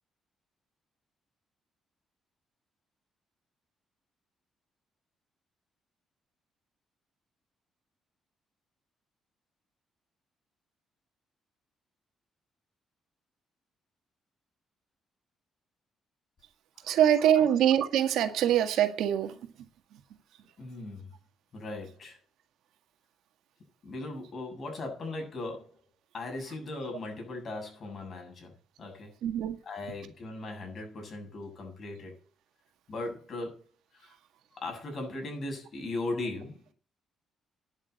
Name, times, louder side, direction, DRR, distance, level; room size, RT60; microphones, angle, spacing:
voice 1, 16.9-19.3 29.2-29.6, right 10 dB, 85° right, 1.9 m, -24 dB
voice 2, 20.6-21.1 21.5-22.2 23.8-25.8 26.1-28.5 28.8-29.1 29.6-32.2 32.9-33.6 33.9-34.2 34.5-36.7, left 2 dB, 45° left, 7.5 m, -38 dB
10.5 x 7.5 x 7.8 m
cardioid pair, 90°, 0 cm